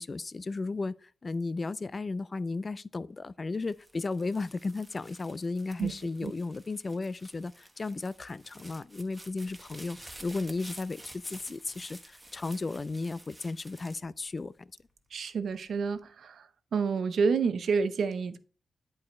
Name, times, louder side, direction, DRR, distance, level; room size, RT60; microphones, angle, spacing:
voice 1, 0.0-14.7, left 3 dB, 40° left, 0.3 m, -35 dB
sound 1, 3.5-14.9 15.4-16.0, right 1 dB, 10° right, 1.2 m, -51 dB
voice 2, 15.1-16.5 16.7-18.4, right 5 dB, 75° right, 0.7 m, -29 dB
11.0 x 4.8 x 3.2 m
cardioid pair, 75°, 0 cm